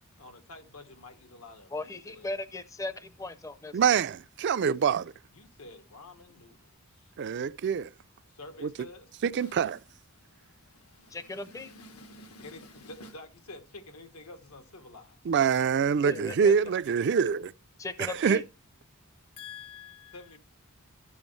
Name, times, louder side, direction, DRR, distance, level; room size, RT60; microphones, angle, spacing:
voice 1, 0.2-2.4 4.6-4.8 5.3-7.1 8.3-9.1 9.4-9.8 10.1-15.2 19.4-20.4, left 3 dB, 85° left, 1.4 m, -49 dB
voice 2, 1.7-3.7 11.1-11.7 16.0-16.5 17.8-18.4, left 2 dB, 15° left, 0.5 m, -37 dB
voice 3, 3.7-5.1 7.2-7.9 8.6-8.7 9.2-9.8 15.3-17.5 18.0-18.4, right 6 dB, 50° right, 0.4 m, -25 dB
12.0 x 7.1 x 3.2 m
head